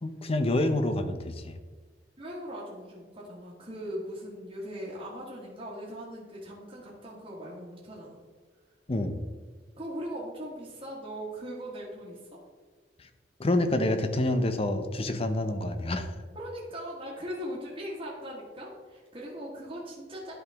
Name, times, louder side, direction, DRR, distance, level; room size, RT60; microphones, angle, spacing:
voice 1, 0.0-1.6 8.9-9.2 13.4-16.2, left 1 dB, 35° left, 8 dB, 0.7 m, -27 dB
voice 2, 2.2-8.2 9.8-12.4 16.3-20.3, equal, 30° right, -6 dB, 1.6 m, -39 dB
11.0 x 5.0 x 3.5 m, 1.4 s
head